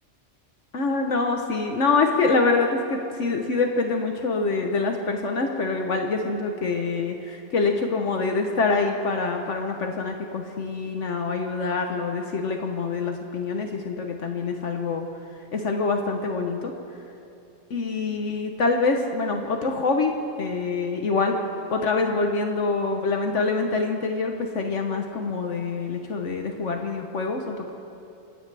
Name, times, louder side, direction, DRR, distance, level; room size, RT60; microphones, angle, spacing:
voice 1, 0.7-17.0 17.7-20.1 20.4-21.4 21.7-27.7, left 4 dB, 70° left, 3 dB, 1.3 m, -25 dB
25.5 x 16.0 x 3.4 m, 2.7 s
omnidirectional pair, 1.3 m